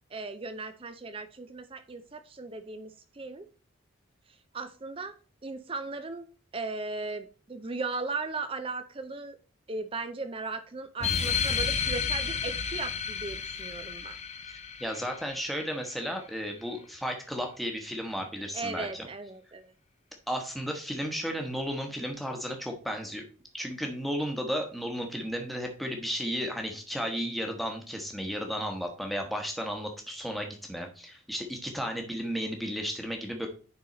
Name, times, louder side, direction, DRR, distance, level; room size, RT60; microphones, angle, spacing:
voice 1, 0.1-3.5 4.5-5.1 5.4-6.3 6.5-9.4 9.7-14.2 18.5-19.7, right 3 dB, 25° right, 10 dB, 0.5 m, -37 dB
sound 1, 11.0-16.0, left 6 dB, 30° left, 0.6 m, -32 dB
voice 2, 14.4-19.1 20.3-23.2 23.5-33.5, equal, ahead, 2 dB, 1.1 m, -34 dB
9.6 x 4.0 x 4.2 m, 0.38 s
head